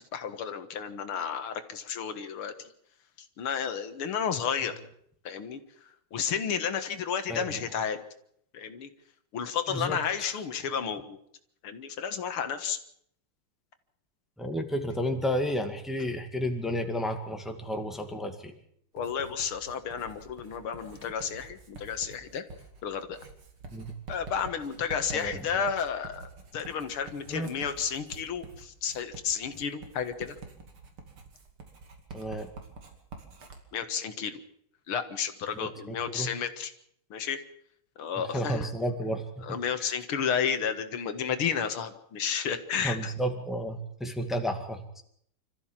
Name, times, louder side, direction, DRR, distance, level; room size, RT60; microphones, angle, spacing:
voice 1, 0.1-2.5 3.4-4.8 5.3-5.6 6.1-8.0 8.5-8.9 9.3-11.2 11.6-12.8 18.9-22.4 22.8-23.2 24.1-30.3 33.7-34.4 34.9-36.7 37.1-37.4 38.0-38.7 39.4-43.1, left 7 dB, 90° left, 9 dB, 2.4 m, -32 dB
voice 2, 7.3-7.6 9.7-10.4 14.4-18.6 23.7-23.9 25.1-25.5 27.3-27.5 32.1-32.5 35.5-36.3 38.2-40.0 42.8-44.8, equal, ahead, 4 dB, 1.9 m, -32 dB
Writing, 19.0-33.6, right 4 dB, 90° right, 3.4 m, -47 dB
26.0 x 14.0 x 7.4 m, 0.69 s
omnidirectional pair, 2.3 m